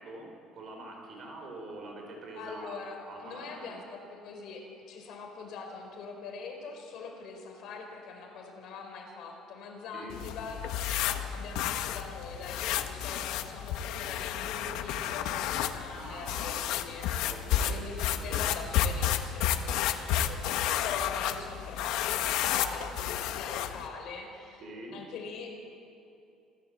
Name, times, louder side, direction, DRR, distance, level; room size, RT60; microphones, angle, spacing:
voice 1, 0.0-2.8 3.1-3.8 9.9-10.2 15.9-16.8 17.2-18.6 24.6-25.0, right 2 dB, 40° right, 2 dB, 4.9 m, -44 dB
voice 2, 2.3-10.6 11.0-17.1 17.7-18.0 18.2-24.6 24.9-25.5, left 4 dB, 50° left, 2 dB, 4.5 m, -43 dB
sound 1, 10.1-23.9, left 10 dB, 70° left, 1.2 m, -31 dB
27.5 x 15.0 x 7.9 m, 2.6 s
cardioid pair, 180°, 0 cm